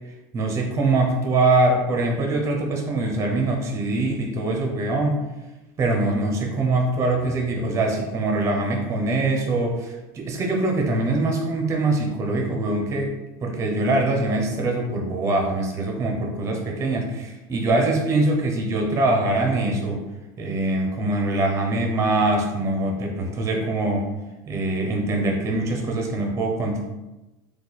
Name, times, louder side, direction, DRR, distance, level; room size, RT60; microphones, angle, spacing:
voice 1, 0.3-5.2 5.8-13.1 13.4-20.0 20.4-24.1 24.5-26.8, right 2 dB, 25° right, 1 dB, 0.7 m, -23 dB
4.1 x 2.7 x 4.1 m, 1.0 s
cardioid pair, 160°, 13 cm